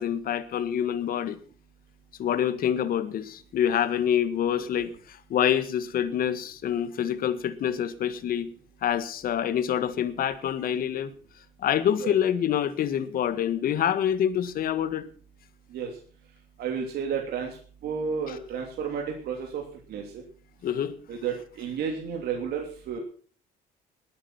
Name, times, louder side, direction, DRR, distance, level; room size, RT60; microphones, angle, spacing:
voice 1, 0.0-1.4 2.2-4.9 5.3-8.5 8.8-11.1 11.6-15.0 18.3-18.4 20.6-20.9, left 9 dB, 60° left, 12 dB, 1.7 m, -26 dB
voice 2, 16.6-17.5 17.8-19.6 19.9-20.0 21.1-23.0, right 6 dB, 70° right, 1 dB, 3.1 m, -31 dB
20.0 x 8.8 x 6.0 m, 0.43 s
cardioid pair, 110°, 17 cm